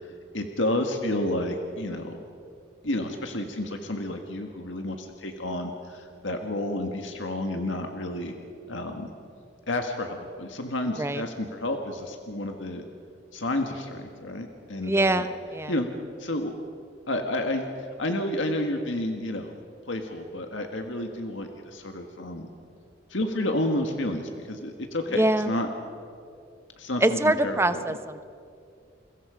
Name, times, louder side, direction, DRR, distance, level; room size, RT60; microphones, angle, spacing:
voice 1, 0.3-2.2 2.8-8.3 8.7-9.1 9.7-12.8 13.3-15.2 15.7-15.9 16.2-16.5 17.1-17.7 18.0-19.5 19.9-22.5 23.1-25.7 26.8-27.6, left 1 dB, 85° left, 4 dB, 1.8 m, -30 dB
voice 2, 14.8-15.7 25.1-25.5 27.0-28.2, right 1 dB, 15° right, 11 dB, 0.7 m, -24 dB
30.0 x 22.0 x 5.1 m, 2.4 s
head